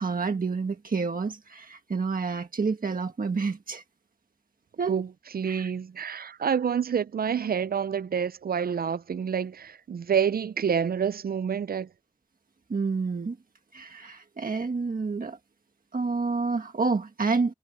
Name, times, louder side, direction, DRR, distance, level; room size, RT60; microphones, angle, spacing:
voice 1, 0.0-3.8 4.8-5.0 5.5-5.7 12.7-13.4 13.7-15.4 15.9-17.5, right 4 dB, 70° right, 1.5 m, -29 dB
voice 2, 5.3-11.9, right 7 dB, 90° right, 0.5 m, -28 dB
wide cardioid pair, 55°, 15 cm